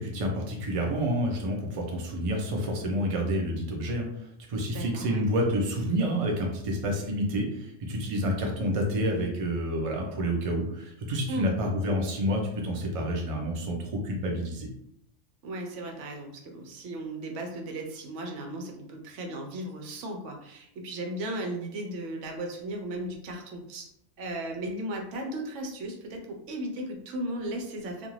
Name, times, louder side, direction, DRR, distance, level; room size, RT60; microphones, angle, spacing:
voice 1, 0.0-14.7, equal, 50° right, 0 dB, 0.4 m, -29 dB
voice 2, 4.7-5.3 11.3-11.6 15.4-23.9 24.2-28.1, right 1 dB, 75° right, 2 dB, 0.9 m, -36 dB
2.5 x 2.3 x 3.0 m, 0.76 s
omnidirectional pair, 1.3 m